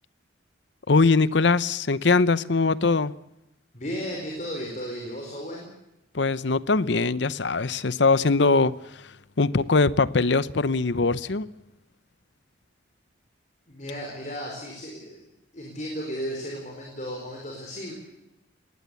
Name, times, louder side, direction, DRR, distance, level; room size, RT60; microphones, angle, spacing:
voice 1, 0.9-3.1 6.1-8.8 9.4-11.5, left 3 dB, 70° left, 0.8 m, -21 dB
voice 2, 3.7-5.7 13.7-15.2 15.5-17.9, equal, 40° left, 4.6 m, -34 dB
21.0 x 18.0 x 8.3 m
head